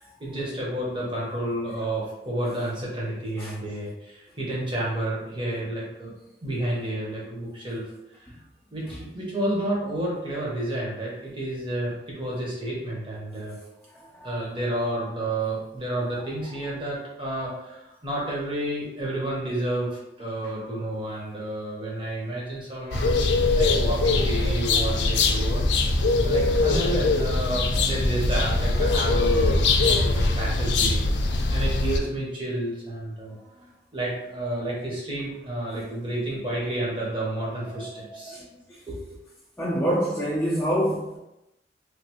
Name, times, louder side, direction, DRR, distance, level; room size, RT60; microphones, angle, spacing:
voice 1, 0.2-6.1 6.4-7.8 8.7-13.6 14.2-23.1 23.6-25.6 26.2-29.5 29.8-33.4 33.9-38.4 38.9-39.1, right 1 dB, 30° right, -5 dB, 1.0 m, -30 dB
voice 2, 13.9-14.4 16.2-16.3 35.7-35.8 37.8-38.8 39.6-41.2, equal, 10° left, -7 dB, 0.5 m, -28 dB
sound 1, 22.9-32.0, left 3 dB, 90° left, 0.4 m, -22 dB
3.2 x 2.6 x 2.9 m, 0.90 s
head